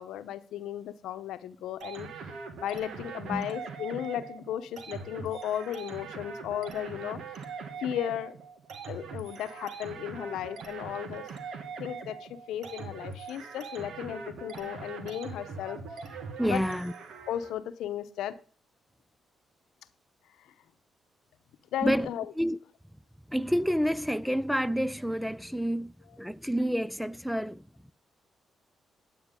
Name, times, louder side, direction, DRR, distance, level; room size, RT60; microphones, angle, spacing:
voice 1, 0.0-2.1 2.6-7.2 7.8-8.3 8.9-11.3 11.8-15.8 16.4-16.6 17.3-18.4 20.4-20.5 21.7-22.3, left 11 dB, 90° left, 0.8 m, -35 dB
sound 1, 1.8-17.5, right 5 dB, 75° right, 1.9 m, -42 dB
voice 2, 16.4-16.9 21.8-22.1 22.4-22.6 23.3-27.6, equal, ahead, 0.4 m, -28 dB
9.7 x 9.3 x 3.7 m
cardioid pair, 80°, 0 cm